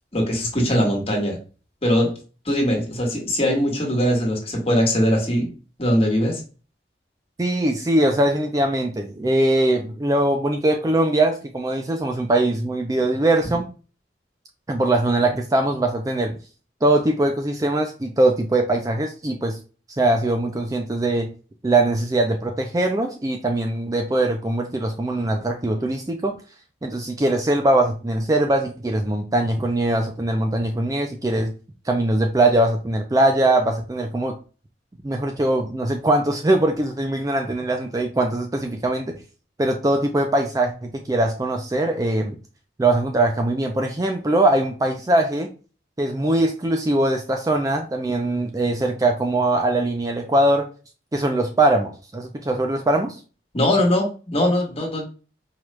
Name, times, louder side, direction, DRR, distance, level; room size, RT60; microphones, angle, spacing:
voice 1, 0.1-1.4 1.8-2.2 2.4-5.5 5.8-6.4 53.5-55.0, equal, 35° left, 0 dB, 1.4 m, -21 dB
voice 2, 7.4-13.6 14.7-16.4 16.8-19.6 20.0-21.3 21.6-26.3 26.8-31.5 31.9-34.3 35.0-39.1 39.6-42.3 42.8-45.5 46.0-50.7 51.1-53.2, right 1 dB, 20° right, 3 dB, 0.4 m, -21 dB
4.6 x 2.4 x 3.2 m, 0.35 s
head